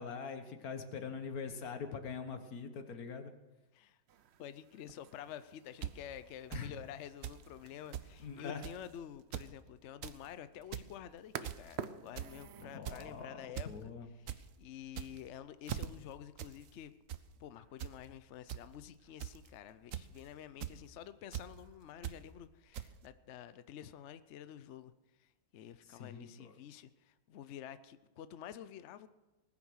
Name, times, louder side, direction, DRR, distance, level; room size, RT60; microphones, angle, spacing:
voice 1, 0.0-3.3 6.5-6.7 8.2-8.6 12.6-14.1 25.9-26.5, left 5 dB, 55° left, 8 dB, 1.6 m, -43 dB
sound 1, 4.1-12.8, right 8 dB, 80° right, 0.5 m, -51 dB
voice 2, 4.4-13.9 14.2-16.9 17.4-24.9 25.2-29.1, left 10 dB, 75° left, 13 dB, 0.6 m, -49 dB
sound 2, 5.8-5.9 6.5-6.6 7.2-7.4 7.7-7.8 7.9-8.1 8.6-8.8 9.2-9.5 9.8-10.2 10.6-10.9 11.4-11.7 12.2-12.4 12.8-13.1 13.6-13.7 14.0-14.4 14.9-15.3 15.7-15.9 16.4-16.5 16.8-17.2 17.8-17.9 18.5-18.6 19.2-19.5 19.9-20.2 20.6-20.8 21.3-21.4 22.0-22.2 22.7-22.9, right 10 dB, 60° right, 0.9 m, -41 dB
19.5 x 9.8 x 6.3 m, 1.1 s
omnidirectional pair, 1.9 m